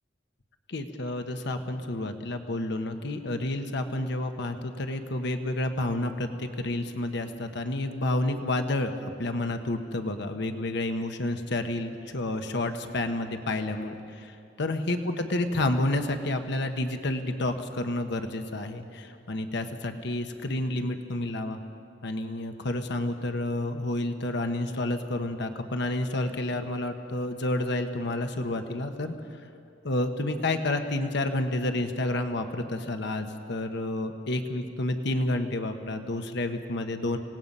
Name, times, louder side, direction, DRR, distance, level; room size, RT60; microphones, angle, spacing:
voice 1, 0.7-21.6 22.0-29.1 29.8-37.2, left 2 dB, 65° left, 6 dB, 1.2 m, -30 dB
26.5 x 17.5 x 5.5 m, 2.5 s
head